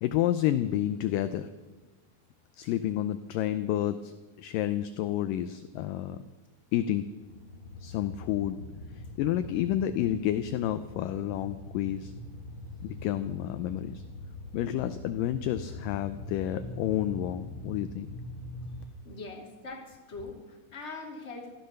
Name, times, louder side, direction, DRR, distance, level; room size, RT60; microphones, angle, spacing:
voice 1, 0.0-1.5 2.6-6.2 6.7-7.1 7.8-8.6 9.2-12.1 12.8-14.0 14.5-18.1, left 12 dB, 80° left, 11 dB, 2.0 m, -30 dB
sound 1, 7.2-18.8, left 2 dB, 65° left, 2.8 m, -43 dB
voice 2, 19.0-21.5, left 3 dB, 20° left, 0 dB, 2.2 m, -42 dB
16.0 x 13.0 x 6.6 m, 1.2 s
omnidirectional pair, 4.4 m